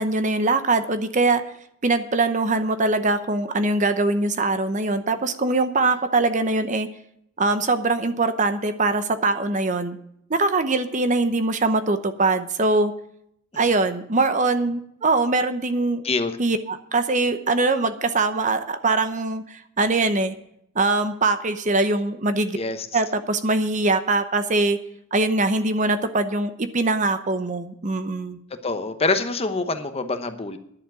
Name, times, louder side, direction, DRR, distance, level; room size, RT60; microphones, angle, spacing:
voice 1, 0.0-1.4 1.8-6.9 7.4-10.0 10.3-12.9 13.6-16.0 16.4-20.3 20.7-22.6 22.9-24.8 25.1-28.4, right 3 dB, 35° right, 10 dB, 0.8 m, -22 dB
voice 2, 16.0-16.4 22.5-23.0 28.6-30.6, left 3 dB, 30° left, 9 dB, 0.9 m, -25 dB
10.5 x 7.2 x 8.9 m, 0.71 s
head